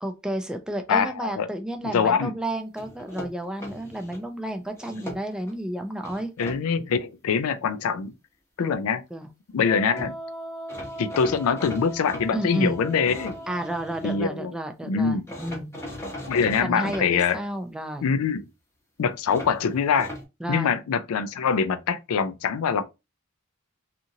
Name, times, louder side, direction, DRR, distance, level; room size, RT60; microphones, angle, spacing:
voice 1, 0.0-6.3 8.6-8.7 9.1-9.3 12.3-12.8 13.5-15.7 16.6-18.1 20.4-20.7, right 1 dB, 5° right, 0.4 m, -31 dB
voice 2, 0.9-1.5 1.8-2.3 6.4-8.1 8.6-9.0 9.5-10.1 11.0-13.3 14.0-14.5 14.9-15.2 16.3-17.4 18.0-18.4 19.0-20.1 20.5-22.8, left 6 dB, 80° left, 0.4 m, -24 dB
sound 1, 2.8-4.2 4.7-5.5 6.0-6.6 9.7-9.8 10.0-10.1 10.7-14.2 15.3-17.0 19.3-20.2, left 1 dB, 15° left, 0.8 m, -39 dB
Wind instrument woodwind instrument, 9.6-14.4, right 1 dB, 85° right, 1.0 m, -39 dB
2.8 x 2.5 x 2.6 m
head